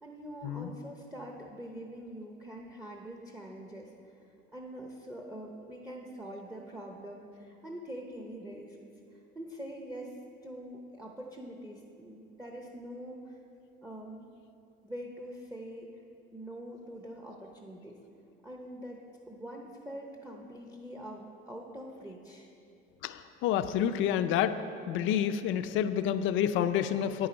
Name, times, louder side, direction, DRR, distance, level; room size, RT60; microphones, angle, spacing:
voice 1, 0.0-4.1 4.5-8.8 9.3-10.1 10.4-13.4 13.8-14.3 14.8-15.9 16.3-18.0 18.4-19.0 19.3-22.5, right 1 dB, 10° right, 0 dB, 0.8 m, -44 dB
voice 2, 23.0-24.6 24.9-27.3, left 9 dB, 70° left, 10 dB, 0.5 m, -29 dB
9.4 x 8.7 x 5.2 m, 2.7 s
cardioid pair, 135°, 21 cm